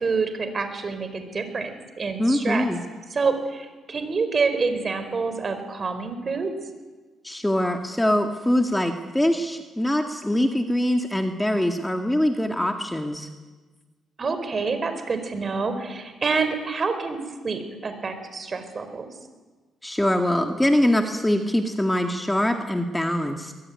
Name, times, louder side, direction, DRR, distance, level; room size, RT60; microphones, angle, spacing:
voice 1, 0.0-2.7 3.1-6.5 14.2-17.2 17.4-19.1, right 4 dB, 40° right, 9 dB, 4.7 m, -27 dB
voice 2, 2.2-2.8 7.2-13.3 19.8-23.5, left 1 dB, 10° left, 4 dB, 2.0 m, -23 dB
23.5 x 21.5 x 9.7 m, 1.3 s
cardioid pair, 90°, 0 cm